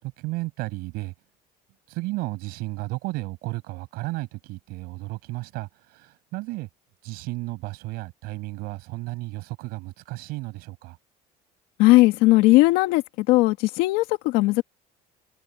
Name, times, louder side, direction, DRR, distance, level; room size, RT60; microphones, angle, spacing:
voice 1, 0.0-1.1 1.9-6.7 7.0-11.0, right 21 dB, 80° right, 6.5 m, -33 dB
voice 2, 11.8-14.6, left 20 dB, 85° left, 2.0 m, -18 dB
cardioid pair, 125°, 16 cm